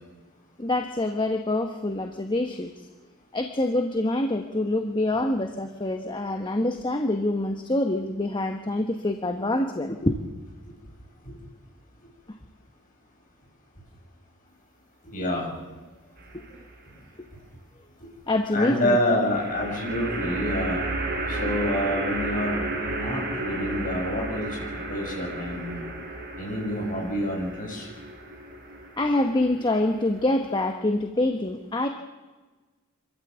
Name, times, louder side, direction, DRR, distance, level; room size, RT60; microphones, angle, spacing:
voice 1, 0.6-2.7 3.3-10.2 16.3-16.4 18.3-19.0 29.0-31.9, left 1 dB, 20° left, 5 dB, 1.1 m, -26 dB
voice 2, 15.0-15.5 18.5-20.8 21.3-24.6 24.9-25.8 26.4-27.9, left 1 dB, 40° left, -1 dB, 7.7 m, -27 dB
sound 1, 16.2-16.8 19.3-30.7, right 2 dB, 50° right, 3.8 m, -33 dB
26.0 x 14.0 x 8.2 m, 1.3 s
head